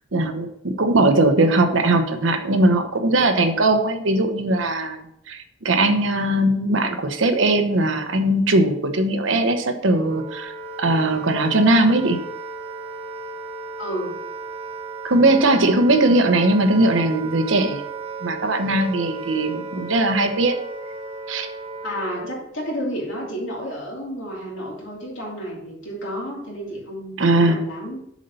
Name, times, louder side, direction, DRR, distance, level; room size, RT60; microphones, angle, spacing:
voice 1, 0.1-5.0 5.3-10.5 10.8-12.2 15.0-17.8 18.2-20.6 21.3-21.5 27.2-27.6, right 2 dB, 75° right, 7 dB, 0.9 m, -19 dB
Wind instrument woodwind instrument, 9.8-22.5, right 3 dB, 30° right, 1.0 m, -35 dB
voice 2, 13.8-14.2 21.8-28.0, equal, 70° left, -3 dB, 2.7 m, -31 dB
7.3 x 4.1 x 5.5 m, 0.75 s
head